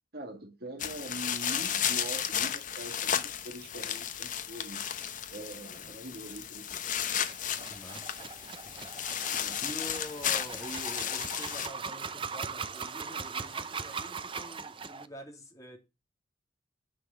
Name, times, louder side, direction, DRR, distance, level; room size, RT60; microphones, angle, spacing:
voice 1, 0.1-4.8 5.3-6.8 9.3-9.6, right 1 dB, 50° right, 2.0 m, -43 dB
sound 1, 0.8-11.7, left 9 dB, 40° left, 0.9 m, -34 dB
sound 2, 7.2-15.1, right 5 dB, 25° right, 0.6 m, -40 dB
voice 2, 7.7-8.3 8.6-9.1 9.6-15.8, equal, 20° left, 3.2 m, -46 dB
10.0 x 6.0 x 7.6 m
head